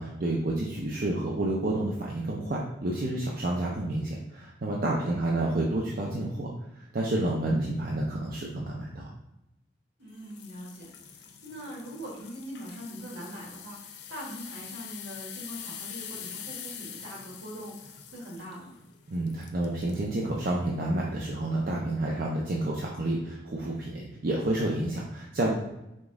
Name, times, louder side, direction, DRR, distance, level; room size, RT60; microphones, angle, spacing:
voice 1, 0.0-6.5 6.8-9.1 19.1-25.5, right 1 dB, 50° right, -3 dB, 0.5 m, -29 dB
voice 2, 4.9-5.5 10.0-18.8, equal, 70° right, -3 dB, 1.3 m, -42 dB
sound 1, 10.2-20.1 20.6-20.8 21.4-21.5, left 8 dB, 60° left, 0.5 m, -44 dB
5.1 x 2.4 x 3.6 m, 0.90 s
head